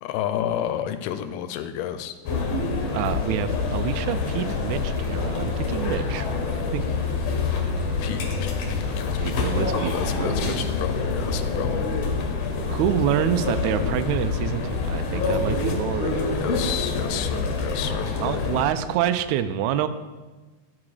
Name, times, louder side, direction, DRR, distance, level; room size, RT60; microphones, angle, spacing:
voice 1, 0.0-2.2 8.0-9.5 9.9-11.9 16.3-18.5, left 10 dB, 80° left, 10 dB, 2.1 m, -31 dB
sound 1, 2.3-18.6, left 4 dB, 65° left, 1.7 m, -26 dB
voice 2, 2.9-6.3 6.7-6.8 9.2-10.6 12.7-16.5 18.2-19.9, right 10 dB, 85° right, 10 dB, 1.6 m, -27 dB
12.5 x 4.9 x 4.9 m, 1.2 s
omnidirectional pair, 3.9 m